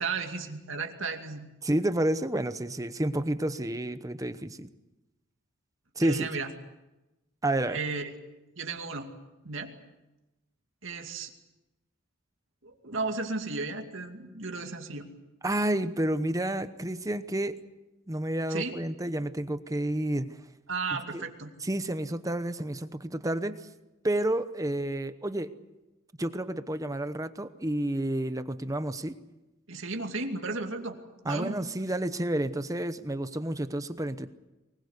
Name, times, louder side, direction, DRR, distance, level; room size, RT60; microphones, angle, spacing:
voice 1, 0.0-1.5 6.0-6.5 7.7-8.1 8.6-9.1 9.4-9.7 10.8-11.3 12.6-15.1 18.5-18.8 20.7-21.5 29.7-31.0 31.3-31.6, right 3 dB, 65° right, 4 dB, 2.4 m, -34 dB
voice 2, 1.6-4.7 6.0-6.3 7.4-7.8 15.4-17.6 18.1-20.3 21.1-21.2 21.6-23.6 24.0-25.5 26.2-29.2 31.2-34.3, right 1 dB, 15° right, 11 dB, 0.9 m, -30 dB
24.5 x 20.5 x 8.2 m, 1.0 s
head